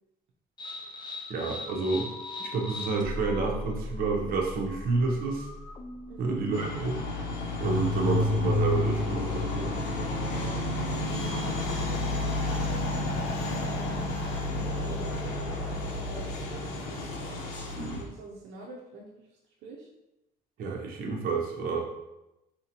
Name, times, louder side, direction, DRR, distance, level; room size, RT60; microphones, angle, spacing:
sound 1, 0.6-11.2, left 2 dB, 25° left, 0.5 m, -34 dB
voice 1, 1.3-2.1 2.4-5.5 6.2-7.0 7.6-9.7 17.7-18.0 20.6-21.8, right 4 dB, 60° right, 0 dB, 0.9 m, -29 dB
sound 2, 6.5-18.0, left 2 dB, 85° left, 0.7 m, -31 dB
voice 2, 10.3-11.1 13.0-13.3 13.6-14.0 14.5-17.6 18.0-19.9, right 2 dB, 85° right, -2 dB, 0.6 m, -47 dB
4.4 x 2.7 x 2.9 m, 0.92 s
cardioid pair, 110°, 17 cm